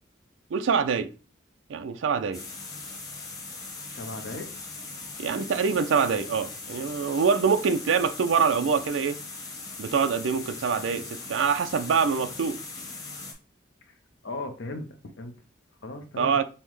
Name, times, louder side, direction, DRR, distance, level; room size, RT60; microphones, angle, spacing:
voice 1, 0.5-1.1 1.7-2.4 5.2-9.2 9.8-12.6 16.2-16.4, right 6 dB, 90° right, 0.4 m, -25 dB
sound 1, 2.3-13.3, left 3 dB, 20° left, 0.8 m, -40 dB
voice 2, 3.9-4.5 13.8-13.9 14.2-15.3 15.8-16.4, left 2 dB, 80° left, 0.6 m, -37 dB
5.4 x 2.1 x 3.1 m
head